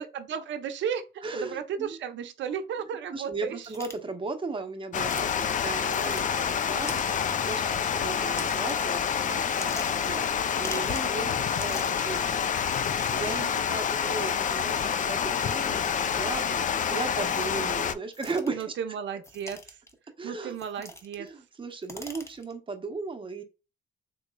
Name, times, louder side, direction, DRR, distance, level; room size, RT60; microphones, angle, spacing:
voice 1, 0.0-3.7 11.5-11.8 18.5-19.8 20.2-21.3, right 7 dB, 70° right, 0.7 m, -34 dB
voice 2, 1.2-2.0 3.1-18.7 20.2-20.5 21.2-23.4, right 3 dB, 25° right, 0.8 m, -36 dB
sound 1, 3.6-4.0 5.1-5.3 5.9-6.3 6.9-7.3 8.4-9.0 9.4-10.1 10.6-11.1 11.5-12.1 12.7-13.3 14.2-14.4 15.4-15.5 16.1-16.4 17.2-17.7 18.1-18.6 19.2-19.9 20.5-21.3 21.6-22.5, left 1 dB, 15° left, 0.7 m, -42 dB
Water, 4.9-17.9, left 7 dB, 40° left, 0.4 m, -28 dB
3.7 x 2.9 x 2.2 m
cardioid pair, 90°, 20 cm